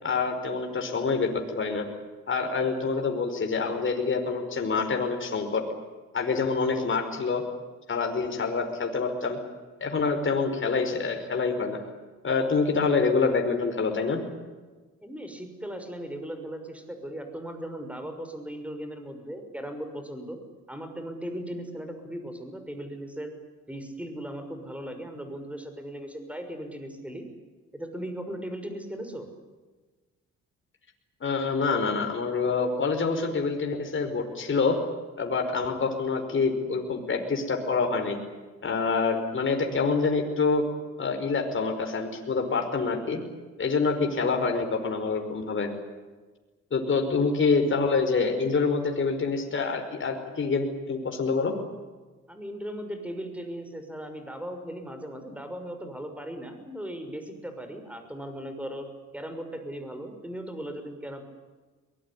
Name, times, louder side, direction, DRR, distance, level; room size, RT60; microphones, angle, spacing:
voice 1, 0.0-1.9 2.3-5.6 6.1-7.4 7.9-9.4 9.8-11.8 12.2-14.2 31.2-34.8 35.2-38.2 38.6-40.6 41.0-43.2 43.6-45.7 46.7-51.5, left 4 dB, 40° left, 3 dB, 5.1 m, -26 dB
voice 2, 15.0-20.4 20.7-23.3 23.7-27.3 27.7-29.3 52.3-58.9 59.1-61.2, equal, 5° right, 7 dB, 6.1 m, -37 dB
23.0 x 21.0 x 10.0 m, 1.3 s
cardioid pair, 90°, 30 cm